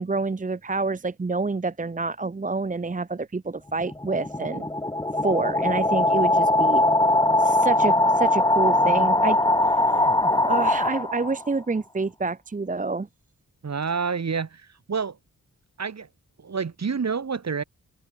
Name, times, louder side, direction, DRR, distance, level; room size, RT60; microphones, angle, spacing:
voice 1, 0.0-4.7 5.2-6.8 7.4-9.4 10.0-10.1 10.5-13.1, right 3 dB, 25° right, 0.9 m, -27 dB
sound 1, 3.7-11.5, left 1 dB, 15° left, 1.9 m, -21 dB
voice 2, 13.6-15.2 15.8-16.1 16.4-17.6, right 5 dB, 55° right, 3.2 m, -28 dB
wide cardioid pair, 100°, 32 cm